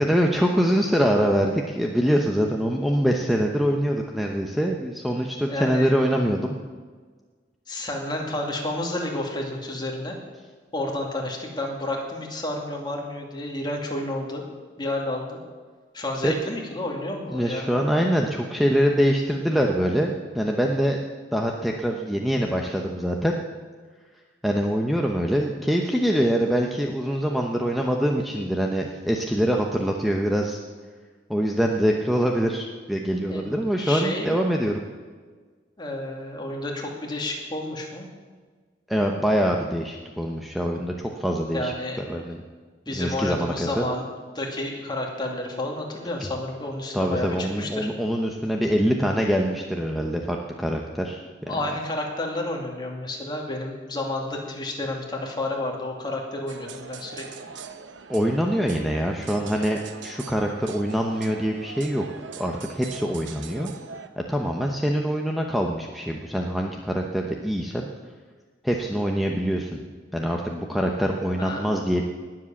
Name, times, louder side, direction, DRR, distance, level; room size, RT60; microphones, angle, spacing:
voice 1, 0.0-6.6 16.2-16.3 17.3-21.0 21.3-23.3 24.4-30.6 31.3-34.8 38.9-42.4 42.9-43.8 46.9-51.6 58.1-62.0 62.4-63.7 64.3-67.9 68.6-69.8 70.1-72.0, equal, ahead, 1 dB, 0.9 m, -24 dB
voice 2, 5.5-5.9 7.7-10.2 10.7-14.4 14.8-15.4 15.9-18.0 33.3-33.5 33.8-34.4 35.8-38.1 41.5-42.2 42.9-44.0 44.3-47.9 51.5-57.3 71.4-71.7, left 1 dB, 25° left, 0 dB, 2.5 m, -30 dB
sound 1, 56.5-64.1, right 5 dB, 90° right, 0.9 m, -41 dB
19.5 x 7.6 x 7.2 m, 1.5 s
head